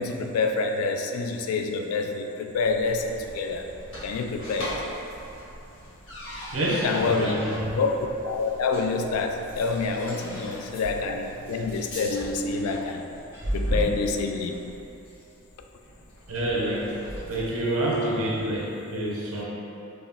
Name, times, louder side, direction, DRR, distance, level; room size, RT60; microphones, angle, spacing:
voice 1, 0.0-3.7 4.0-4.8 6.7-7.4 7.7-13.0 13.5-14.6, left 4 dB, 90° left, 4 dB, 0.3 m, -27 dB
sound 1, 2.6-17.6, equal, 65° left, 1.4 m, -37 dB
voice 2, 6.5-7.8 16.3-16.9 17.3-19.4, right 1 dB, 80° right, -5 dB, 0.8 m, -27 dB
4.0 x 2.2 x 3.5 m, 2.9 s
head